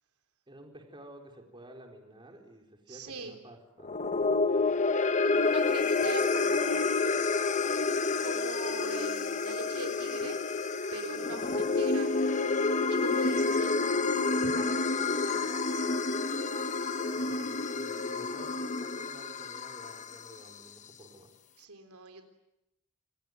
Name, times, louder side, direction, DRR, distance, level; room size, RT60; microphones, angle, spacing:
voice 1, 0.5-4.8 11.5-11.6 17.1-21.4, right 1 dB, 20° right, 2 dB, 4.3 m, -52 dB
voice 2, 2.9-3.4 5.2-6.9 8.2-10.4 10.9-12.3 12.9-15.8 21.6-22.2, right 3 dB, 80° right, 5 dB, 3.7 m, -42 dB
sound 1, 3.8-20.3, left 3 dB, 35° left, 1.0 m, -29 dB
28.5 x 21.0 x 9.5 m, 0.89 s
head